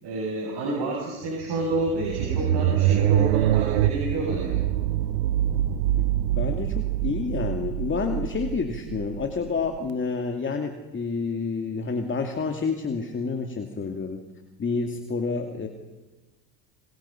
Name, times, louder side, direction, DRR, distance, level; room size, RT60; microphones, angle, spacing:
voice 1, 0.0-4.6, right 2 dB, 50° right, -1 dB, 8.0 m, -29 dB
sound 1, 1.4-9.8, right 12 dB, 75° right, 1.3 m, -25 dB
voice 2, 6.4-14.2 14.6-15.7, left 4 dB, 25° left, 4 dB, 2.5 m, -29 dB
26.5 x 24.0 x 5.8 m, 1.2 s
supercardioid pair, 95°, 49 cm